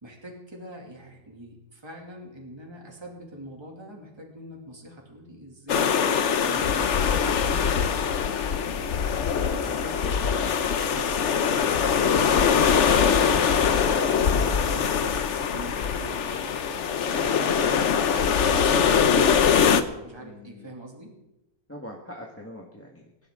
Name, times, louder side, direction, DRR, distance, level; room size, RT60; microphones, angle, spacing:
voice 1, 0.0-7.7 8.2-10.2 10.9-11.5 12.2-21.1, right 1 dB, 15° right, 0 dB, 2.6 m, -42 dB
sound 1, 5.7-19.8, left 7 dB, 55° left, 1.0 m, -22 dB
voice 2, 20.2-20.8 21.7-23.3, equal, 10° left, -1 dB, 1.5 m, -44 dB
23.0 x 11.5 x 3.8 m, 0.95 s
omnidirectional pair, 1.7 m